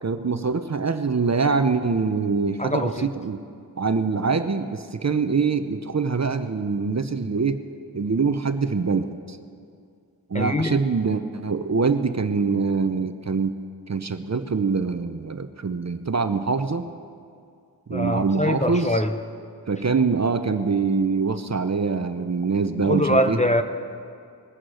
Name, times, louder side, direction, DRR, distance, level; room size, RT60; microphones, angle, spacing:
voice 1, 0.0-3.4 3.8-7.6 7.9-9.4 10.3-13.5 13.9-16.8 17.9-19.0 19.7-23.4, right 4 dB, 40° right, 10 dB, 0.7 m, -24 dB
voice 2, 2.6-3.1 10.3-10.8 17.9-19.1 22.8-23.6, left 1 dB, 20° left, 8 dB, 0.7 m, -23 dB
21.0 x 9.0 x 6.3 m, 2.4 s
wide cardioid pair, 65°, 40 cm